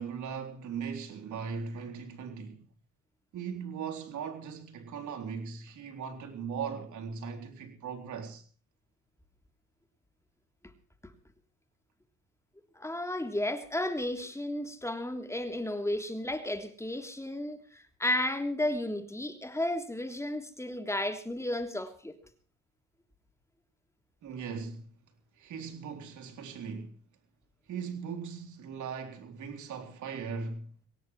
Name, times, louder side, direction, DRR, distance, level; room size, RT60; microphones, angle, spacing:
voice 1, 0.0-2.7 3.3-8.4 24.2-25.0 25.4-27.0 27.7-30.7, right 6 dB, 75° right, 3.9 m, -39 dB
voice 2, 12.7-22.2, left 1 dB, 10° left, 3.3 m, -33 dB
23.5 x 18.0 x 3.2 m
cardioid pair, 90°, 30 cm